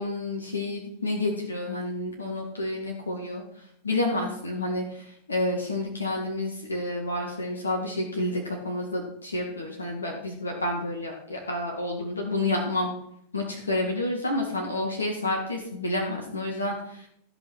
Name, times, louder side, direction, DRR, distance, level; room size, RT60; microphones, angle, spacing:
voice 1, 0.0-12.9 13.3-17.1, left 2 dB, 75° left, 1 dB, 1.9 m, -29 dB
14.0 x 5.6 x 6.2 m, 0.72 s
figure-of-eight pair, 90°, 0 cm